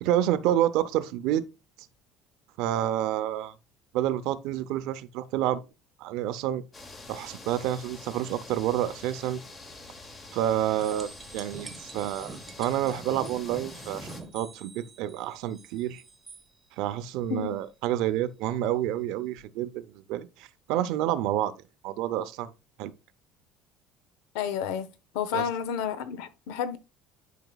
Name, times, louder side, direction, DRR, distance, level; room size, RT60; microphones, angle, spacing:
voice 1, 0.0-1.4 2.6-3.5 3.9-5.6 6.0-6.6 7.1-9.4 10.3-16.0 16.8-21.5 21.8-22.5 22.8-22.9 25.3-25.4, right 12 dB, 65° right, 0.6 m, -29 dB
sound 1, 6.7-14.2, left 2 dB, 20° left, 1.0 m, -46 dB
sound 2, 10.8-16.4 19.4-19.5, right 3 dB, 10° right, 1.1 m, -46 dB
voice 2, 24.3-24.9 25.1-26.8, left 8 dB, 85° left, 0.8 m, -30 dB
11.0 x 5.0 x 2.3 m
cardioid pair, 165°, 0 cm